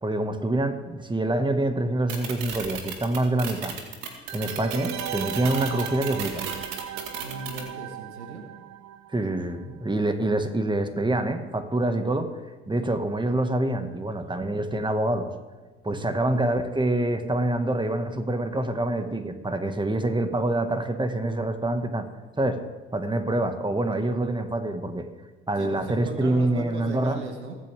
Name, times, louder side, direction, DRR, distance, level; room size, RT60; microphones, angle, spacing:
voice 1, 0.0-3.8 4.3-6.5 9.1-12.4 12.7-15.3 15.8-22.1 22.4-22.6 22.9-25.1 25.5-27.2, right 1 dB, 15° right, 8 dB, 1.7 m, -26 dB
sound 1, 2.1-7.6, right 8 dB, 70° right, 2.0 m, -34 dB
sound 2, 4.3-9.8 10.0-10.1, right 11 dB, 55° right, 0.7 m, -38 dB
voice 2, 7.1-8.5 15.9-16.2 25.6-27.6, right 3 dB, 90° right, 5 dB, 1.3 m, -37 dB
22.5 x 9.4 x 3.6 m, 1.3 s
hypercardioid pair, 50°, 33 cm